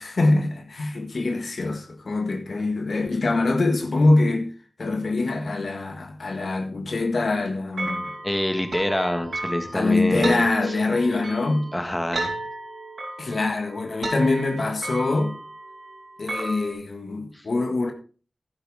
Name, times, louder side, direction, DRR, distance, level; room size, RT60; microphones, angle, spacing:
voice 1, 0.0-4.5 4.8-8.1 9.7-11.7 13.2-15.4 16.2-17.9, left 2 dB, 75° left, 1.8 m, -24 dB
sound 1, 7.8-16.7, right 2 dB, 80° right, 3.9 m, -34 dB
voice 2, 8.2-10.8 11.7-12.3 17.3-17.5, left 1 dB, 15° left, 1.7 m, -26 dB
11.5 x 9.8 x 3.6 m
cardioid pair, 40°, 0 cm